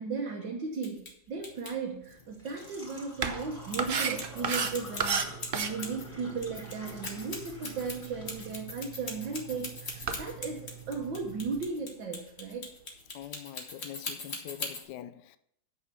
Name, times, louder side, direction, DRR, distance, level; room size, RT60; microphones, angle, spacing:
voice 1, 0.0-12.7, right 4 dB, 80° right, 1.9 m, -36 dB
sound 1, 0.8-1.1 1.4-1.7 3.7-6.1 6.4-14.8, left 3 dB, 35° left, 1.7 m, -40 dB
Engine / Trickle dribble / Fill (with liquid), 1.3-13.3, left 1 dB, 20° left, 3.7 m, -50 dB
sound 2, 3.2-11.7, right 6 dB, 55° right, 0.6 m, -36 dB
voice 2, 13.1-15.4, left 12 dB, 75° left, 1.1 m, -44 dB
9.4 x 5.6 x 6.8 m
omnidirectional pair, 2.0 m